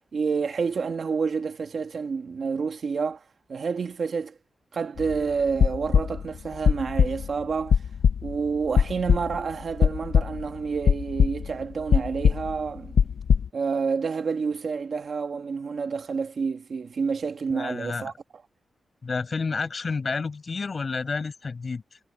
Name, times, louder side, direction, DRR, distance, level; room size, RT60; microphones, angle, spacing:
voice 1, 0.1-3.2 3.5-4.3 4.7-7.8 8.2-13.0 13.5-18.1, right 5 dB, 50° right, 1.4 m, -29 dB
sound 1, 5.0-5.2 5.5-6.4 6.7-7.3 7.7-8.4 8.8-9.5 9.8-10.5 10.8-11.6 11.9-13.5, left 7 dB, 85° left, 0.8 m, -21 dB
voice 2, 17.5-18.1 19.0-22.0, left 4 dB, 35° left, 7.4 m, -30 dB
wide cardioid pair, 170°, 0 cm